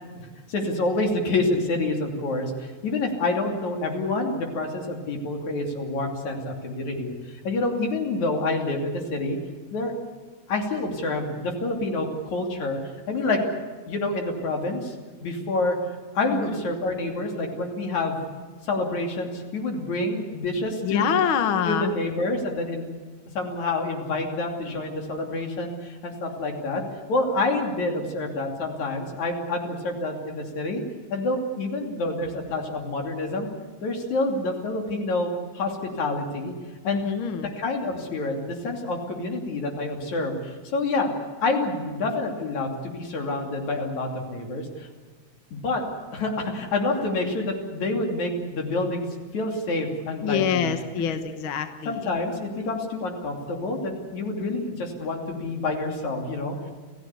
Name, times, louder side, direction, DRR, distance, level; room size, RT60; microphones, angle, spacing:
voice 1, 0.5-7.1 7.4-9.4 9.7-9.9 10.5-12.8 13.1-13.4 13.9-14.9 15.2-15.8 16.1-18.2 18.6-21.2 21.7-22.9 23.4-26.8 27.1-30.8 31.1-33.5 33.8-36.5 36.8-37.1 37.4-41.1 41.4-44.9 45.5-45.8 46.1-49.1 49.3-50.7 51.9-56.7, left 2 dB, 70° left, 3 dB, 4.2 m, -27 dB
voice 2, 20.8-21.9 36.8-37.5 50.2-52.1, left 8 dB, 55° left, 9 dB, 1.7 m, -25 dB
28.5 x 15.5 x 8.3 m, 1.5 s
omnidirectional pair, 3.4 m